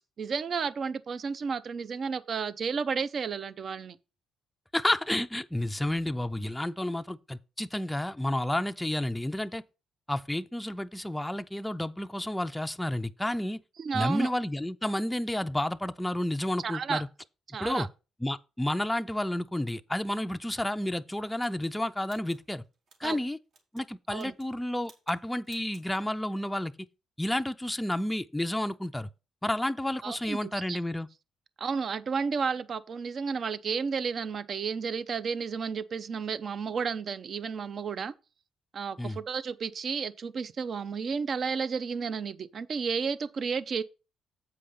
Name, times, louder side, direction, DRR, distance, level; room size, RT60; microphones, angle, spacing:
voice 1, 0.2-4.0 13.8-14.3 16.6-17.0 17.5-17.9 23.0-23.2 24.1-24.3 30.0-30.8 31.6-38.1 38.7-43.8, right 5 dB, 50° right, 0.6 m, -32 dB
voice 2, 4.7-9.6 10.1-13.6 13.9-17.1 17.6-17.9 18.2-22.6 23.0-23.4 23.7-26.9 27.2-29.1 29.4-31.1 39.0-39.2, left 1 dB, 5° left, 0.5 m, -31 dB
sound 1, 21.4-23.2 23.5-23.9 24.1-24.5 24.8-25.2 25.4-25.9, right 4 dB, 70° right, 2.3 m, -58 dB
7.7 x 5.0 x 5.7 m
cardioid pair, 90°, 0 cm